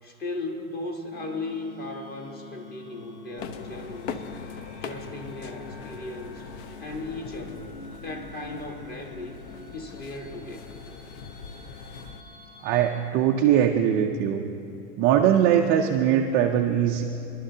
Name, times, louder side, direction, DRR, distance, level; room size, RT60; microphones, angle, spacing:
voice 1, 0.0-4.2 4.8-6.5 6.8-9.4 9.7-10.6, left 2 dB, 20° left, 3 dB, 1.2 m, -37 dB
sound 1, 1.1-13.0, left 3 dB, 80° left, 2.6 m, -46 dB
sound 2, 3.4-12.2, left 6 dB, 50° left, 0.7 m, -41 dB
voice 2, 12.6-14.4 15.0-17.0, right 9 dB, 25° right, 2 dB, 0.4 m, -21 dB
24.0 x 11.5 x 2.7 m, 2.8 s
supercardioid pair, 140°, 44 cm